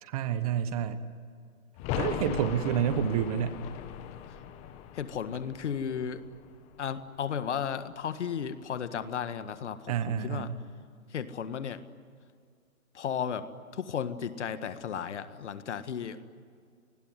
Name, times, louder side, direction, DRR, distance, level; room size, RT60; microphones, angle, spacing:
voice 1, 0.0-1.0 2.0-3.6 9.9-10.6, right 9 dB, 25° right, 12 dB, 1.2 m, -29 dB
sound 1, 1.8-7.3 7.6-7.7, left 9 dB, 15° left, 1.0 m, -38 dB
voice 2, 4.9-6.2 6.8-10.5 11.1-11.8 12.9-13.5 13.7-16.2, left 8 dB, 55° left, 11 dB, 1.8 m, -34 dB
28.0 x 20.0 x 9.7 m, 2.2 s
hypercardioid pair, 145°, 42 cm